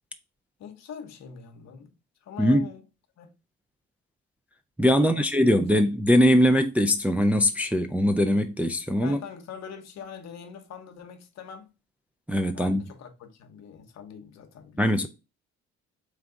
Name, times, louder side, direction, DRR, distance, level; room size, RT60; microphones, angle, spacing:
voice 1, 0.6-1.9 2.2-2.8 3.2-3.3 4.9-5.6 9.0-11.7 12.5-15.1, left 7 dB, 55° left, 0.9 m, -43 dB
voice 2, 4.8-9.2 12.3-12.8 14.8-15.1, equal, 5° right, 0.4 m, -21 dB
3.4 x 3.3 x 3.7 m
hypercardioid pair, 50°, 32 cm